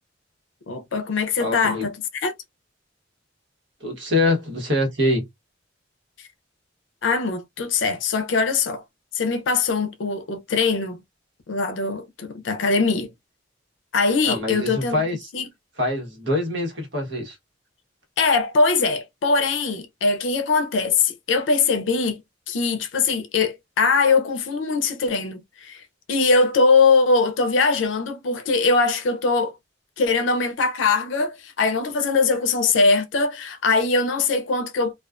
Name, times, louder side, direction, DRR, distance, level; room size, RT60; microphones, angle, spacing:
voice 1, 0.7-1.9 2.2-2.3 7.0-8.8 9.1-11.0 11.5-13.1 13.9-15.0 15.3-15.4 18.2-22.2 22.5-25.8 26.1-29.5 30.0-34.9, left 4 dB, 90° left, 0.5 m, -21 dB
voice 2, 1.4-1.9 3.8-5.3 14.3-15.3 15.8-17.4, left 1 dB, 70° right, 1.1 m, -24 dB
2.4 x 2.3 x 2.2 m
head